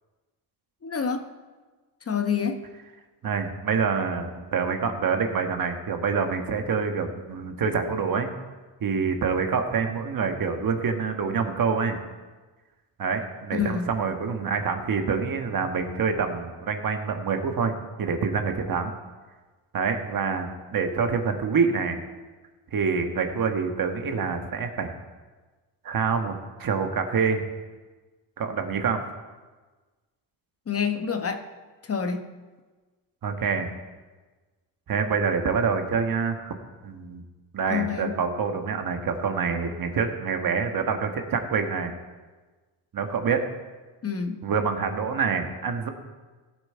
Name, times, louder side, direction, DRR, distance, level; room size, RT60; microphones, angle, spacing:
voice 1, 0.8-1.3 2.0-2.6 13.5-13.9 30.7-31.4 31.8-32.2 37.7-38.1 44.0-44.4, left 6 dB, 30° left, 7 dB, 1.1 m, -27 dB
voice 2, 3.2-8.3 8.8-12.0 13.0-18.9 19.7-22.0 22.7-24.9 25.8-27.4 28.4-29.0 33.2-33.7 34.9-36.5 36.8-37.2 37.5-41.9 42.9-43.5 44.4-45.9, right 5 dB, 50° right, 6 dB, 1.5 m, -26 dB
16.0 x 7.5 x 4.5 m, 1.3 s
cardioid pair, 90°, 44 cm